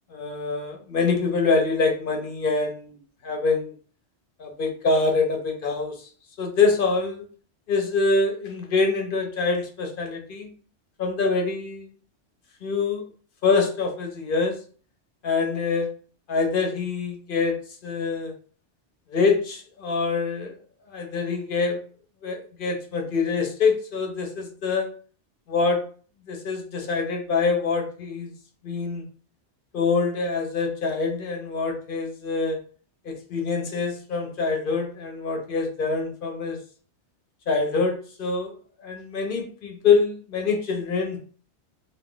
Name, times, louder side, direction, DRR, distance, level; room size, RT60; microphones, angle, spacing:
voice 1, 0.1-3.7 4.4-6.1 6.4-7.2 7.7-10.5 11.0-11.9 12.6-13.0 13.4-14.6 15.2-15.9 16.3-17.5 17.8-18.3 19.1-20.5 20.9-21.8 22.2-24.9 25.5-25.8 26.3-28.3 28.6-29.0 29.7-32.6 33.0-36.6 37.5-38.5 38.8-41.2, left 4 dB, 55° left, 3 dB, 0.8 m, -25 dB
2.6 x 2.4 x 3.5 m, 0.42 s
omnidirectional pair, 1.2 m